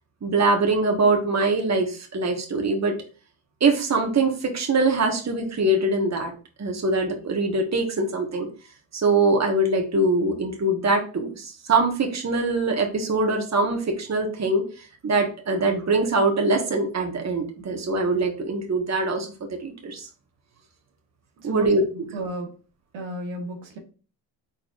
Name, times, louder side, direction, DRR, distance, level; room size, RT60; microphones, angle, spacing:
voice 1, 0.2-2.9 3.6-6.3 6.6-8.5 8.9-19.3 19.6-20.1 21.4-21.8, right 2 dB, 35° right, 3 dB, 1.5 m, -23 dB
voice 2, 21.9-22.5 22.9-23.8, right 1 dB, 80° right, 2 dB, 1.5 m, -33 dB
4.5 x 4.3 x 2.5 m, 0.36 s
supercardioid pair, 65°, 46 cm